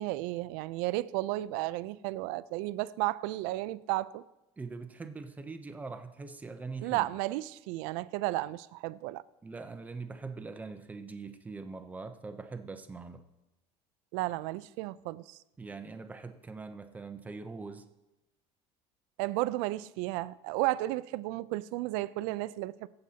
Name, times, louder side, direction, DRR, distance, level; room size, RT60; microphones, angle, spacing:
voice 1, 0.0-4.2 6.8-9.2 14.1-15.4 19.2-22.9, right 17 dB, 75° right, 0.5 m, -33 dB
voice 2, 4.6-7.1 9.4-13.2 15.6-17.8, right 4 dB, 10° right, 0.6 m, -42 dB
23.0 x 7.8 x 2.8 m
cardioid pair, 160°, 14 cm